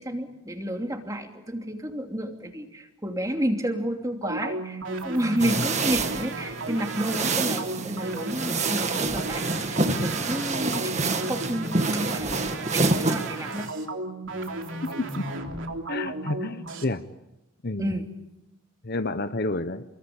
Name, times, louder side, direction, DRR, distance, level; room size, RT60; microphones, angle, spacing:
voice 1, 0.0-13.7 17.8-18.0, equal, 15° right, 4 dB, 2.9 m, -31 dB
sound 1, 4.2-16.8, right 2 dB, 55° right, 3.3 m, -34 dB
sound 2, 5.4-13.7, right 3 dB, 30° right, 2.0 m, -28 dB
voice 2, 14.8-15.3 15.9-17.0 17.6-18.0 18.8-19.8, left 2 dB, 45° left, 11 dB, 1.1 m, -30 dB
29.5 x 23.0 x 8.7 m, 0.91 s
head